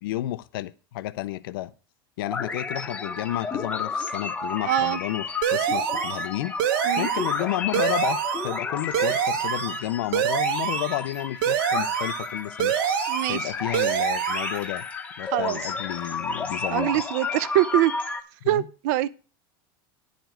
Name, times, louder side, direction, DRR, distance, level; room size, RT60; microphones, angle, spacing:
voice 1, 0.0-1.7 2.2-6.5 7.0-12.7 13.3-14.9 15.2-16.9 18.4-18.7, left 15 dB, 75° left, 0.6 m, -31 dB
sound 1, 2.3-18.2, left 4 dB, 10° left, 0.8 m, -32 dB
voice 2, 4.6-5.0 6.8-7.1 13.1-13.5 15.3-15.6 16.7-17.9 18.5-19.1, right 14 dB, 50° right, 0.5 m, -24 dB
sound 2, 5.4-6.3 6.6-7.4 7.7-8.6 8.9-9.8 10.1-11.0 11.4-12.3 12.6-13.5 13.7-14.6, right 9 dB, 70° right, 1.2 m, -25 dB
10.0 x 5.1 x 7.5 m
supercardioid pair, 175°, 12 cm